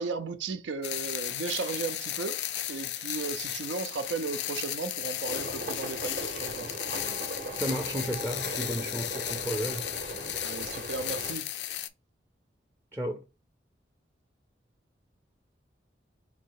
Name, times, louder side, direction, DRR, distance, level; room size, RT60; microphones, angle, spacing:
voice 1, 0.0-2.4 2.7-6.8 10.4-11.5, right 4 dB, 90° right, 0.5 m, -35 dB
sound 1, 0.8-11.9, left 12 dB, 75° left, 0.4 m, -35 dB
sound 2, 5.3-11.3, right 2 dB, 50° right, 0.7 m, -39 dB
voice 2, 7.5-9.9 12.9-13.2, equal, 15° right, 0.5 m, -33 dB
4.0 x 2.7 x 4.5 m
head